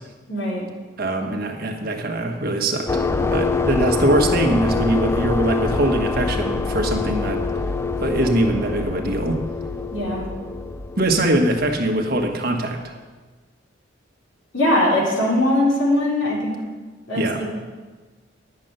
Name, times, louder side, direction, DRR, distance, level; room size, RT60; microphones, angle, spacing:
voice 1, 0.3-0.6 9.9-10.2 14.5-16.6 17.1-17.5, left 1 dB, 75° left, -4 dB, 3.7 m, -20 dB
voice 2, 1.0-7.4 8.0-9.4 11.0-12.8 17.1-17.4, right 1 dB, 55° right, 2 dB, 1.5 m, -22 dB
sound 1, 2.9-12.4, left 3 dB, 15° left, 0.4 m, -25 dB
10.5 x 6.7 x 9.0 m, 1.3 s
head